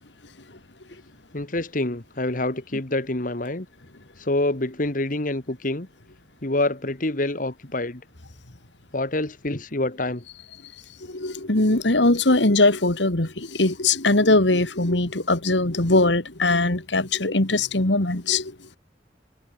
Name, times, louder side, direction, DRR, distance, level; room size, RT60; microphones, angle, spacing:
voice 1, 1.3-3.7 4.2-5.9 6.4-8.0 8.9-10.2, left 2 dB, 50° left, 2.0 m, -26 dB
voice 2, 11.1-18.5, left 2 dB, 85° left, 2.5 m, -21 dB
head